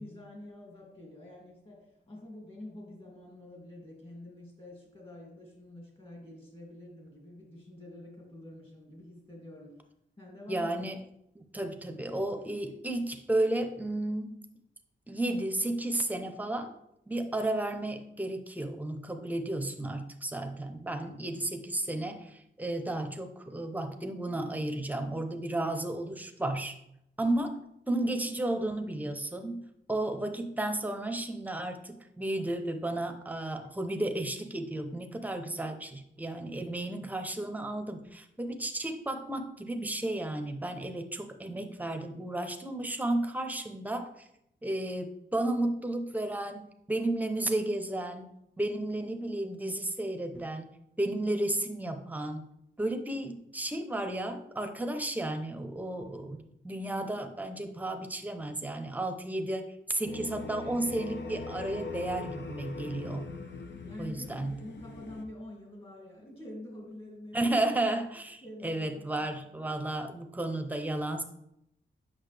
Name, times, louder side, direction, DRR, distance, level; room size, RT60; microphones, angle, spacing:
voice 1, 0.0-9.7 10.2-10.8 63.8-67.6 68.4-70.6, left 1 dB, 30° left, -1 dB, 2.5 m, -47 dB
voice 2, 10.5-11.0 11.3-14.4 15.1-16.7 17.1-26.8 27.2-27.6 27.9-29.6 29.9-44.3 44.6-48.3 48.6-50.7 51.0-52.4 52.8-56.4 56.6-63.3 64.0-64.6 67.3-71.2, right 1 dB, 10° right, 6 dB, 0.7 m, -33 dB
sound 1, 60.0-65.2, left 4 dB, 70° left, 0.8 m, -41 dB
8.0 x 6.0 x 3.3 m, 0.79 s
wide cardioid pair, 120°, 19 cm